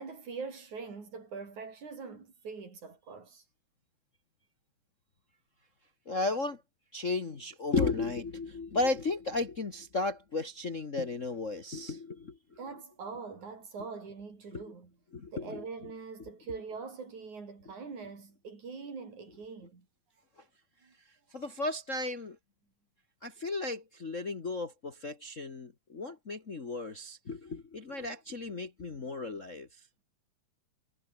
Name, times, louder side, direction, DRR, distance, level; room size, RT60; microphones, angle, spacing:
voice 1, 0.0-3.4 12.6-14.9 15.3-19.9 20.8-20.9, right 4 dB, 75° right, 6.4 m, -43 dB
voice 2, 6.1-6.6 6.9-12.4 14.5-14.6 15.1-15.6 21.3-22.4 23.2-29.7, left 3 dB, 35° left, 1.3 m, -34 dB
omnidirectional pair, 3.4 m